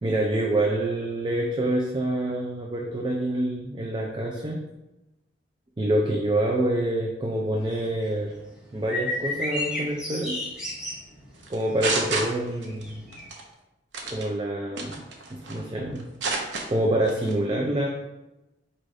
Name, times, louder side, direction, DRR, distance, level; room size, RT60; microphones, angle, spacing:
voice 1, 0.0-4.6 5.8-8.3 8.7-10.4 11.5-13.1 14.1-15.0 15.3-16.1 16.7-17.9, right 1 dB, 25° right, 0 dB, 0.4 m, -26 dB
sound 1, 7.6-13.3, left 2 dB, 5° right, 1.5 m, -33 dB
sound 2, 11.4-12.8 13.1-13.4 13.9-14.3 14.8-15.6 16.0-16.7 17.1-17.3, right 3 dB, 75° right, 0.7 m, -29 dB
4.8 x 4.2 x 2.6 m, 0.97 s
head